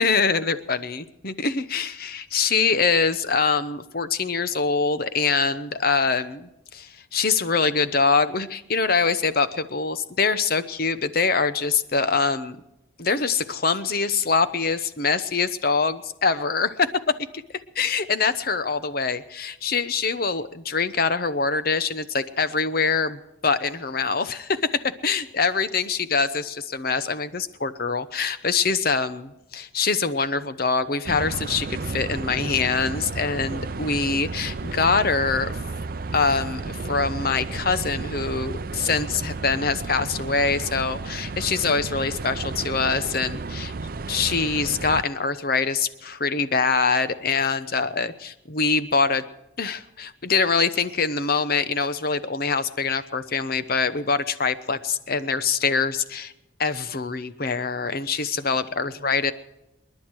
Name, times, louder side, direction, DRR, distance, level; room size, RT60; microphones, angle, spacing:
voice 1, 0.0-12.6 13.0-16.9 17.7-35.5 36.1-43.7 44.1-49.2 49.6-56.3 56.6-59.3, left 4 dB, 50° left, 13 dB, 0.9 m, -24 dB
sound 1, 31.0-45.0, right 3 dB, 45° right, 0.5 m, -32 dB
28.5 x 11.0 x 4.7 m, 0.92 s
head